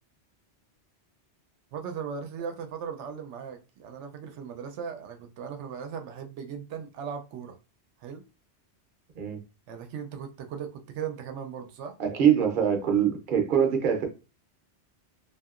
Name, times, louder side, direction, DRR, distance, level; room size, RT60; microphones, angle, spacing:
voice 1, 1.7-7.6 8.0-8.2 9.7-11.9, right 7 dB, 90° right, 0.9 m, -38 dB
voice 2, 12.0-14.1, right 8 dB, 55° right, 0.8 m, -23 dB
2.7 x 2.6 x 2.4 m
omnidirectional pair, 1.2 m